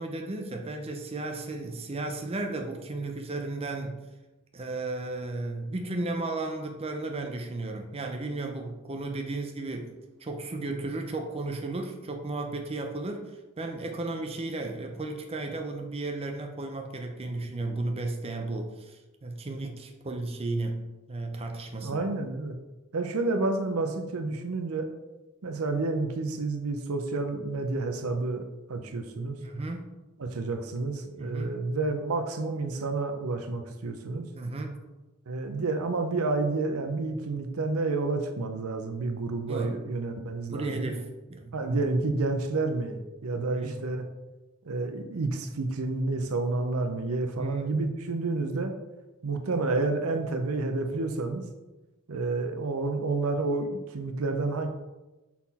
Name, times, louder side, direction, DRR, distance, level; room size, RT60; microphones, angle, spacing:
voice 1, 0.0-4.0 4.5-9.9 10.2-13.3 13.6-22.0 29.4-29.9 31.1-31.6 34.3-34.8 39.5-39.7 40.5-41.8 43.3-43.9 47.4-47.7, right 2 dB, 25° right, 3 dB, 0.6 m, -34 dB
voice 2, 21.8-22.5 22.9-24.9 25.4-28.4 28.7-29.4 30.2-34.3 35.3-40.9 41.5-44.0 44.6-48.8 49.2-51.5 52.1-53.7 53.9-54.7, right 3 dB, 75° right, 6 dB, 0.7 m, -30 dB
5.7 x 4.3 x 4.1 m, 1.1 s
head